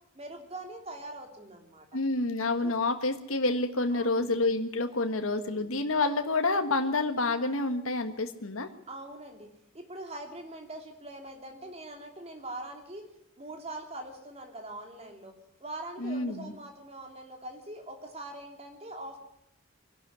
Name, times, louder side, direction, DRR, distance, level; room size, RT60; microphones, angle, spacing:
voice 1, 0.1-1.9 2.6-2.7 3.9-4.4 5.4-5.8 8.9-9.5 9.7-13.0 13.4-15.3 15.6-19.2, right 1 dB, 30° right, 3 dB, 3.0 m, -43 dB
voice 2, 1.9-8.7 16.0-16.5, left 2 dB, 75° left, 6 dB, 1.5 m, -28 dB
23.0 x 12.0 x 9.5 m, 0.82 s
head